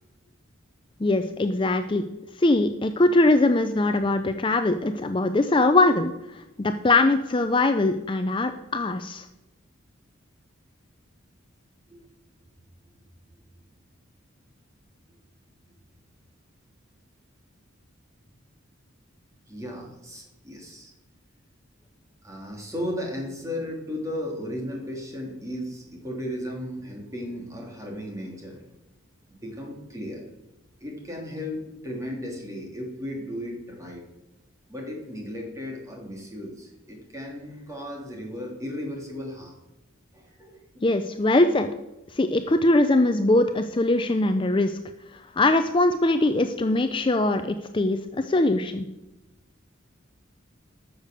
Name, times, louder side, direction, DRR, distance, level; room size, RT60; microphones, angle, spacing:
voice 1, 1.0-2.0 2.4-9.3 40.8-41.7 42.1-44.8 45.1-48.9, left 2 dB, 25° left, 8 dB, 0.5 m, -22 dB
voice 2, 19.5-20.9 22.2-28.6 29.3-30.2 30.8-34.0 34.7-39.6 40.1-40.9, left 1 dB, 15° right, -1 dB, 2.9 m, -35 dB
13.5 x 6.6 x 6.8 m, 0.98 s
head